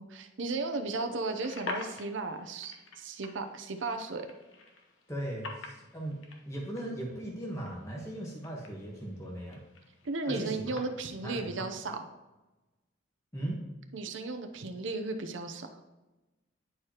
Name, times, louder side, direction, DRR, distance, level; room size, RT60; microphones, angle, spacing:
voice 1, 0.0-4.3 10.0-12.0 13.9-15.8, right 3 dB, 75° right, 6 dB, 0.7 m, -35 dB
sound 1, 1.2-11.7, left 3 dB, 85° left, 1.0 m, -47 dB
voice 2, 5.1-6.2 6.5-9.6 10.3-10.8 11.2-11.7 13.3-13.6, right 1 dB, 15° left, -3 dB, 1.2 m, -38 dB
10.0 x 4.8 x 2.9 m, 1.1 s
head